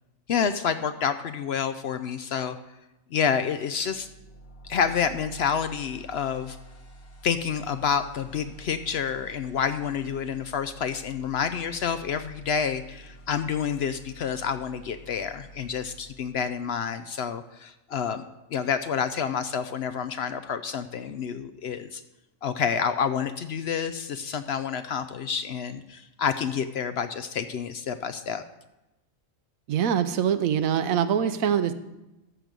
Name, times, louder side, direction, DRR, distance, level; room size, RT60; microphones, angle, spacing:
voice 1, 0.3-2.6 3.1-4.1 4.6-6.6 7.2-18.2 18.5-22.0 22.4-28.4, left 7 dB, 65° left, 10 dB, 0.7 m, -28 dB
sound 1, 3.8-16.9, right 1 dB, 50° left, 1.6 m, -49 dB
voice 2, 29.7-31.7, right 8 dB, 85° right, 11 dB, 1.1 m, -24 dB
14.0 x 6.1 x 5.2 m, 0.98 s
omnidirectional pair, 1.4 m